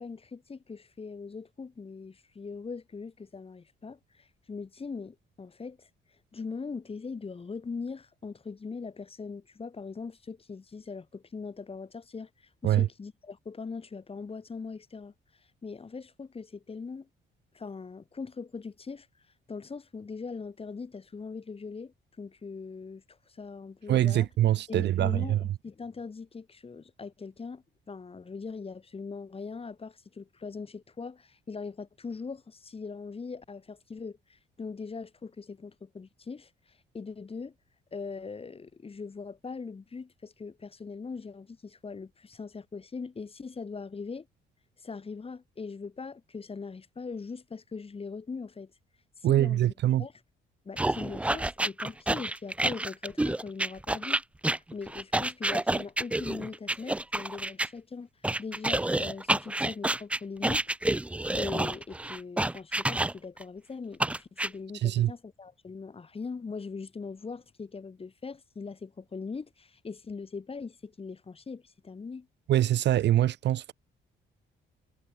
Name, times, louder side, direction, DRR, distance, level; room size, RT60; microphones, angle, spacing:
voice 1, 0.0-5.9 6.3-12.3 12.6-15.1 15.6-17.1 17.5-19.1 19.5-24.3 24.7-37.5 37.9-44.3 44.8-48.7 49.2-49.7 50.0-50.1 50.6-54.2 54.7-58.1 58.4-60.8 61.3-72.3, left 4 dB, 30° left, 1.6 m, -41 dB
voice 2, 23.9-25.4 49.2-50.1 64.8-65.1 72.5-73.7, right 12 dB, 60° right, 0.6 m, -24 dB
sound 1, 50.8-57.7 58.2-63.4 64.0-64.5, right 2 dB, 5° right, 0.4 m, -29 dB
cardioid pair, 90°, 20 cm